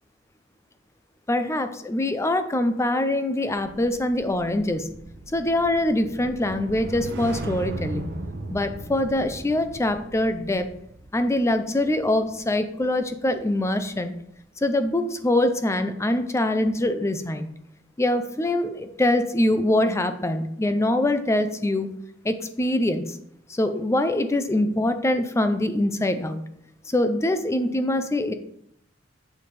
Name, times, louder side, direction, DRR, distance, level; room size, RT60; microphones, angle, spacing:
voice 1, 1.3-4.9 5.3-8.1 8.5-10.7 11.1-14.1 14.6-17.5 18.0-21.9 22.2-23.2 23.5-26.4 26.9-28.3, left 1 dB, 15° left, 9 dB, 0.4 m, -24 dB
sound 1, 3.5-13.9 14.3-14.6, right 2 dB, 60° right, 0.8 m, -38 dB
7.1 x 6.8 x 3.3 m, 0.73 s
head